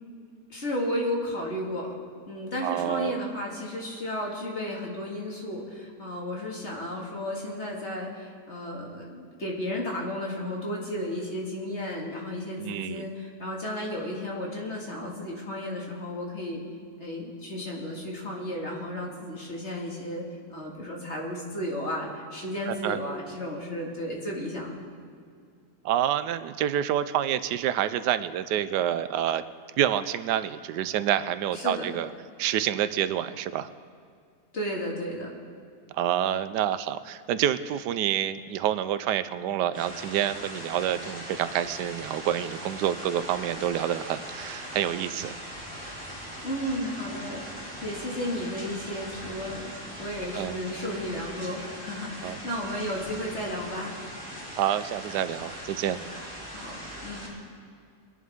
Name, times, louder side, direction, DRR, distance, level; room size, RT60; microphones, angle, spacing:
voice 1, 0.5-1.9 2.3-16.6 17.0-20.2 20.5-24.8 31.5-31.9 34.5-35.3 46.4-49.7 50.0-53.9 56.5-57.3, left 1 dB, 45° left, -2 dB, 2.4 m, -33 dB
voice 2, 2.6-3.2 12.6-13.0 22.7-23.0 25.8-29.4 29.8-32.1 32.4-33.7 35.9-45.4 50.3-50.6 52.2-52.4 54.5-56.0, right 11 dB, 90° right, 13 dB, 1.2 m, -28 dB
sound 1, 39.7-57.3, equal, 5° left, 3.7 m, -40 dB
23.5 x 11.0 x 3.6 m, 2.2 s
omnidirectional pair, 1.7 m